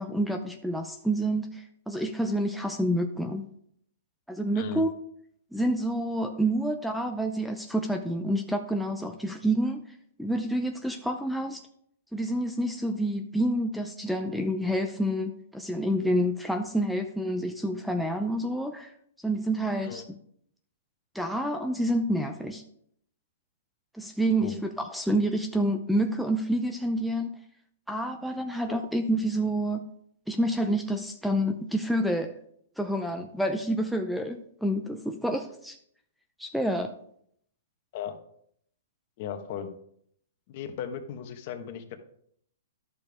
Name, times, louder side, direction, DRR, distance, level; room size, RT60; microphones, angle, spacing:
voice 1, 0.0-3.5 4.3-4.9 5.5-9.8 10.2-11.6 12.1-18.9 19.2-20.0 21.1-22.6 23.9-27.3 27.9-29.8 30.3-32.4 32.8-35.8 36.4-36.9, right 1 dB, ahead, 6 dB, 0.5 m, -28 dB
voice 2, 39.2-39.7 40.5-42.0, left 8 dB, 45° left, 7 dB, 1.2 m, -36 dB
11.5 x 7.0 x 3.6 m, 0.67 s
hypercardioid pair, 145°, 0 cm